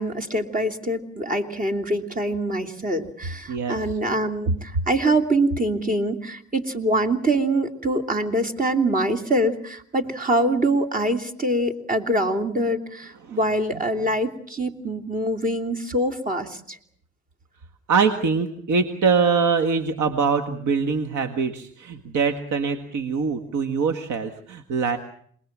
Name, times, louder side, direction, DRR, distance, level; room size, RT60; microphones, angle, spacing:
voice 1, 0.0-16.8, right 1 dB, 25° right, 5 dB, 3.0 m, -24 dB
voice 2, 3.5-3.8 13.2-13.4 17.9-25.0, right 5 dB, 75° right, 7 dB, 1.9 m, -23 dB
27.5 x 20.5 x 7.4 m, 0.62 s
cardioid pair, 90°, 30 cm